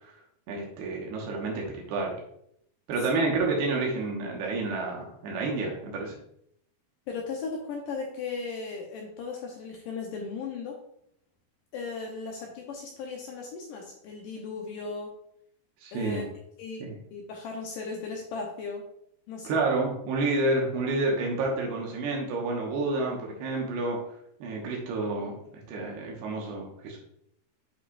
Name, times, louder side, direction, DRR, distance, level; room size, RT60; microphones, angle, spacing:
voice 1, 0.5-2.2 2.9-6.2 15.8-16.3 16.8-16.9 19.4-24.0 24.4-25.3 25.7-27.0, right 3 dB, 85° right, -1 dB, 3.2 m, -29 dB
voice 2, 7.1-10.8 11.7-15.1 15.9-16.3 16.6-16.9 17.1-18.8 19.3-19.6, left 4 dB, 80° left, 0 dB, 1.9 m, -36 dB
8.6 x 5.1 x 2.4 m, 0.72 s
omnidirectional pair, 4.7 m